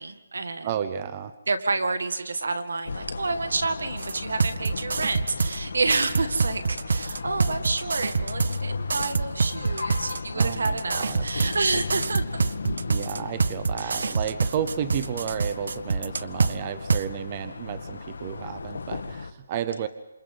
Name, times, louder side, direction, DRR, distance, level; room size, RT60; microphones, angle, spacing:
voice 1, 0.0-0.7 1.5-12.4 13.8-14.2, right 3 dB, 80° right, 8 dB, 2.0 m, -29 dB
voice 2, 0.6-1.3 10.3-11.3 12.9-19.9, right 9 dB, 25° right, 12 dB, 0.6 m, -32 dB
sound 1, 2.9-19.3, left 4 dB, 75° left, 1.4 m, -35 dB
sound 2, 4.0-5.6 5.9-8.6 8.9-11.6 11.9-16.5 16.9-17.0, right 4 dB, 65° right, 0.7 m, -26 dB
27.5 x 27.0 x 3.9 m, 0.96 s
hypercardioid pair, 170°, 0 cm